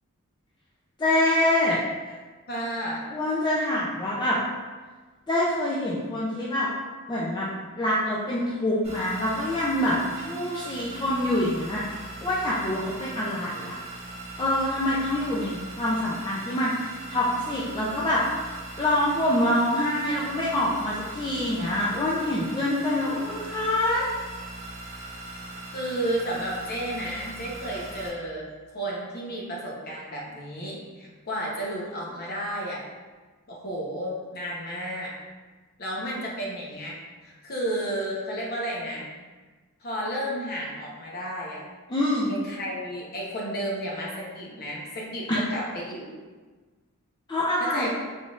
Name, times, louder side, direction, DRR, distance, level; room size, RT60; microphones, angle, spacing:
voice 1, 1.0-1.8 2.1-2.2 3.1-4.4 5.3-6.7 7.1-7.5 7.8-13.8 14.4-16.7 17.1-18.2 18.8-24.1 41.9-42.3 47.3-47.9, left 1 dB, 20° left, -6 dB, 0.4 m, -25 dB
voice 2, 2.5-3.1 25.7-28.5 28.7-32.8 33.5-35.1 35.8-39.1 39.8-41.6 42.2-46.1 47.6-47.9, right 1 dB, 45° left, -3 dB, 0.8 m, -32 dB
sound 1, 8.8-28.1, right 2 dB, 30° right, 1.2 m, -40 dB
3.8 x 3.8 x 2.4 m, 1.3 s
head